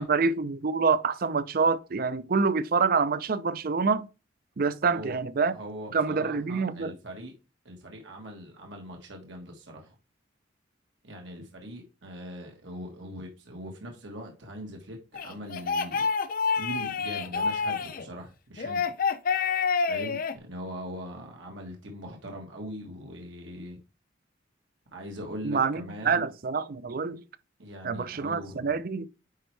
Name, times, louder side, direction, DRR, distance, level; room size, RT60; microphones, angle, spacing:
voice 1, 0.0-4.1 4.6-5.5 5.9-7.0 25.4-27.2 27.8-29.1, right 4 dB, 50° right, 0.5 m, -26 dB
voice 2, 4.8-5.2 5.5-7.3 7.6-9.9 11.0-16.1 16.5-18.9 19.9-23.8 24.9-26.3 27.6-28.8, equal, 80° right, 1.6 m, -41 dB
sound 1, 15.1-18.0 18.6-20.3, left 5 dB, 50° left, 0.5 m, -28 dB
9.3 x 4.5 x 3.3 m
head